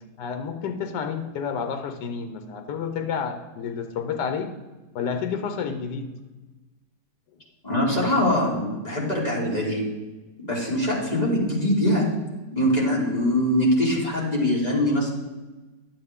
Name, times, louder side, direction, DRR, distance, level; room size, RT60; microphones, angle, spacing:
voice 1, 0.2-4.5 4.9-6.1, left 6 dB, 80° left, 6 dB, 1.4 m, -30 dB
voice 2, 7.6-9.9 10.4-12.1 12.5-15.1, left 1 dB, 25° left, -5 dB, 2.6 m, -23 dB
11.0 x 8.3 x 3.6 m, 1.2 s
omnidirectional pair, 1.9 m